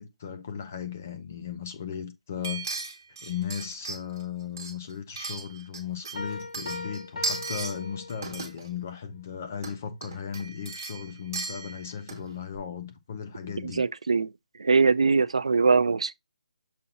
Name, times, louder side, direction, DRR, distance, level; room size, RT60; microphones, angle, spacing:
voice 1, 0.0-2.8 3.2-13.8, left 8 dB, 20° left, 0.5 m, -36 dB
sound 1, 2.4-4.2 4.6-5.8 6.0-7.8 8.1-8.7 9.5-9.7 10.0-12.3 12.5-12.6, right 4 dB, 20° right, 1.4 m, -36 dB
Piano, 6.2-8.6, left 3 dB, 80° left, 1.8 m, -39 dB
voice 2, 13.8-14.3 14.6-16.1, right 4 dB, 55° right, 0.4 m, -22 dB
6.8 x 2.7 x 5.6 m
hypercardioid pair, 180°, 4 cm